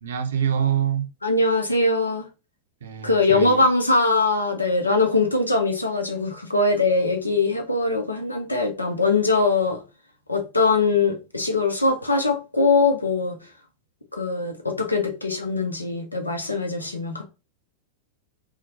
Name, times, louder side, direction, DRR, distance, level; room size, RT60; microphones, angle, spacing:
voice 1, 0.0-1.1 2.8-3.6, right 9 dB, 65° right, 0.5 m, -25 dB
voice 2, 1.2-2.3 3.0-9.8 10.3-13.4 14.1-17.2, left 3 dB, 80° left, 0.5 m, -22 dB
2.7 x 2.0 x 2.8 m
figure-of-eight pair, 90°, 0 cm